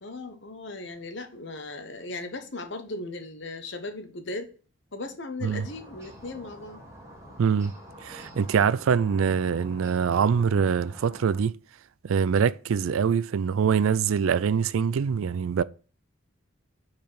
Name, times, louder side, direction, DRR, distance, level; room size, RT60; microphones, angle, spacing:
voice 1, 0.0-4.5 4.9-6.8, left 2 dB, 60° left, 1.1 m, -37 dB
sound 1, 5.4-11.4, equal, 15° right, 1.7 m, -46 dB
voice 2, 7.4-7.7 8.0-11.5 12.0-15.6, right 6 dB, 80° right, 0.4 m, -24 dB
5.2 x 4.6 x 5.6 m
head